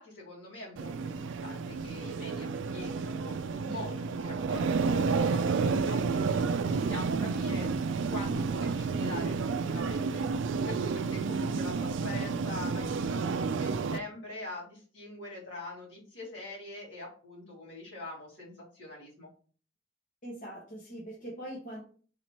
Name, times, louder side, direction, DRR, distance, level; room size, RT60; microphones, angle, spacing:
voice 1, 0.0-6.3 6.6-7.7 8.1-9.4 9.7-10.2 10.7-19.3, left 2 dB, 75° left, -5 dB, 2.5 m, -44 dB
sound 1, 0.8-14.0, right 4 dB, 80° right, 0.3 m, -30 dB
voice 2, 20.2-21.8, right 1 dB, 45° left, -5 dB, 1.3 m, -42 dB
4.0 x 2.9 x 4.5 m, 0.42 s
head